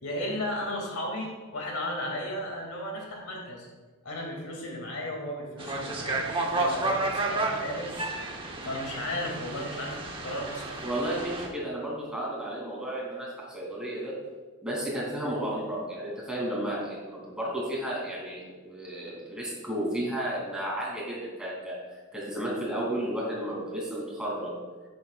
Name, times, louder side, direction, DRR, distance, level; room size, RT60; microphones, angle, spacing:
voice 1, 0.0-3.7 4.0-6.2 6.5-7.9 8.6-10.8, left 1 dB, 90° left, -1 dB, 2.5 m, -34 dB
sound 1, 5.6-11.5, right 2 dB, 25° right, 1.1 m, -31 dB
voice 2, 10.8-14.2 14.6-21.8 22.1-24.6, right 1 dB, 5° right, -5 dB, 2.9 m, -33 dB
11.5 x 9.4 x 2.4 m, 1.3 s
head